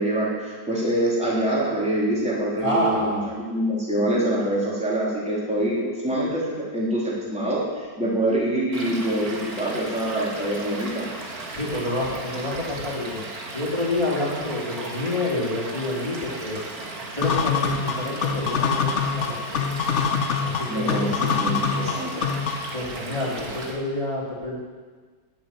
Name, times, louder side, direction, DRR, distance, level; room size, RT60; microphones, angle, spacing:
voice 1, 0.0-3.2 3.5-11.0 20.7-22.1, right 1 dB, 5° right, -6 dB, 3.5 m, -25 dB
voice 2, 2.6-3.2 4.0-4.1 11.5-13.2 13.5-16.6 17.0-19.6 20.4-21.0 22.7-24.6, left 1 dB, 15° left, -6 dB, 3.5 m, -28 dB
Stream / Liquid, 8.7-23.7, right 2 dB, 50° right, 2.4 m, -36 dB
sound 1, 17.2-22.8, left 6 dB, 50° left, 1.0 m, -25 dB
11.0 x 10.5 x 9.1 m, 1.5 s
omnidirectional pair, 2.0 m